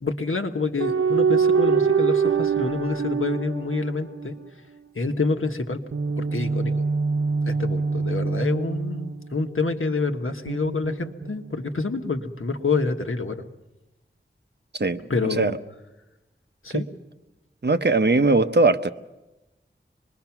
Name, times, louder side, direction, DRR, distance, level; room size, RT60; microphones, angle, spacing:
voice 1, 0.0-4.4 4.9-5.8 6.2-6.7 7.5-13.4 15.1-15.6 16.6-16.9, left 3 dB, 80° left, 5 dB, 1.4 m, -27 dB
sound 1, 0.8-4.5 5.9-9.7 10.5-11.7, right 5 dB, 85° right, 0.8 m, -24 dB
voice 2, 17.6-18.9, right 3 dB, 55° right, 9 dB, 0.9 m, -20 dB
25.5 x 21.0 x 6.0 m, 1.0 s
wide cardioid pair, 55°, 21 cm